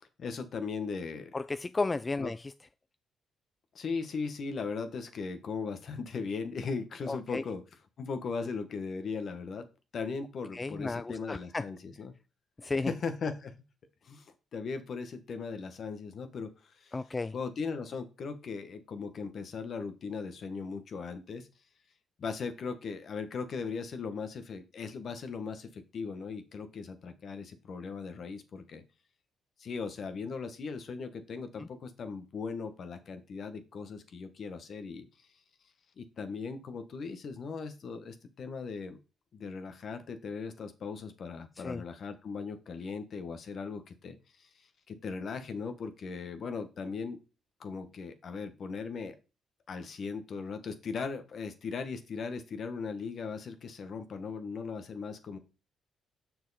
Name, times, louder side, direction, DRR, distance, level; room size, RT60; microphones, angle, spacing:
voice 1, 0.0-1.3 2.2-2.3 3.7-7.6 8.0-9.7 9.9-12.1 12.8-13.5 14.0-16.9 17.3-21.5 22.2-28.8 29.6-35.1 36.0-39.0 39.3-47.2 47.6-49.1 49.7-55.4, left 5 dB, 55° left, 1.3 m, -38 dB
voice 2, 1.3-2.5 7.1-7.4 10.5-11.6 12.6-12.9 16.9-17.3 31.6-31.7 41.6-41.8, left 3 dB, 25° left, 0.3 m, -33 dB
7.1 x 6.3 x 4.1 m
cardioid pair, 90°, 0 cm